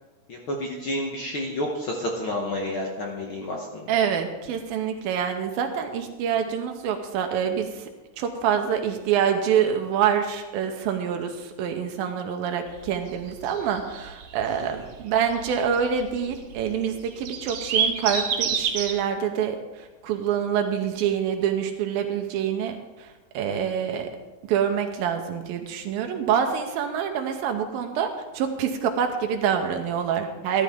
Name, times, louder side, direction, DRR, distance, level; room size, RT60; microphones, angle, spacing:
voice 1, 0.3-3.9, left 1 dB, 75° left, 0 dB, 1.1 m, -30 dB
voice 2, 3.9-7.9 8.2-24.1 24.5-30.6, right 8 dB, 85° right, 5 dB, 2.6 m, -26 dB
sound 1, 12.7-18.9, right 6 dB, 65° right, 2.5 m, -28 dB
13.5 x 12.5 x 3.6 m, 1.1 s
omnidirectional pair, 4.1 m